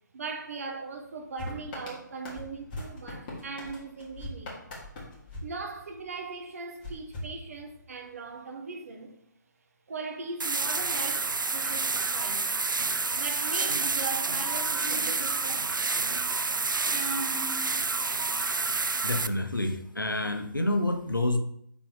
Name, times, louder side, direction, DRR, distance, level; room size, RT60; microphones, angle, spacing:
voice 1, 0.1-4.6 5.4-9.1 9.9-12.5 13.2-15.9, right 4 dB, 45° right, 1.1 m, -39 dB
sound 1, 1.4-6.2 6.8-8.0, left 1 dB, 25° left, 1.7 m, -42 dB
sound 2, 10.4-19.3, right 4 dB, 75° right, 0.4 m, -29 dB
sound 3, 13.5-14.0 14.8-15.7 16.9-17.7, right 2 dB, 25° right, 2.3 m, -39 dB
voice 2, 19.0-21.4, left 1 dB, 85° left, 0.9 m, -28 dB
5.8 x 4.1 x 3.9 m
figure-of-eight pair, 140°, 11 cm